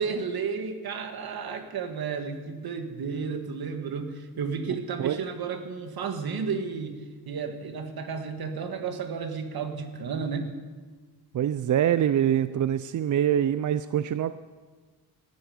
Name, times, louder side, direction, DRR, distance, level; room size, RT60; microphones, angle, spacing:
voice 1, 0.0-10.5, right 5 dB, 75° right, 6 dB, 1.8 m, -32 dB
voice 2, 11.3-14.4, right 10 dB, 55° right, 13 dB, 0.5 m, -24 dB
18.5 x 13.5 x 5.1 m, 1.4 s
wide cardioid pair, 135°, 37 cm